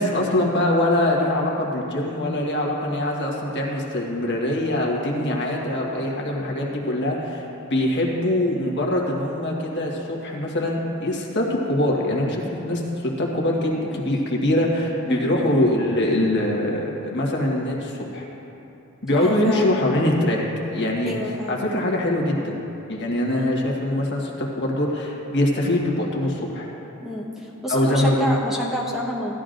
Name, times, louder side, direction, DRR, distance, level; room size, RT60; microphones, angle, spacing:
voice 1, 0.0-7.4 7.7-18.2 19.0-20.4 20.7-21.2 21.5-22.6 22.9-26.7 27.7-28.3, left 1 dB, 55° left, -2 dB, 1.4 m, -23 dB
voice 2, 19.2-19.7 21.1-21.6 27.0-29.3, equal, ahead, -4 dB, 1.1 m, -28 dB
15.0 x 12.0 x 2.6 m, 3.0 s
head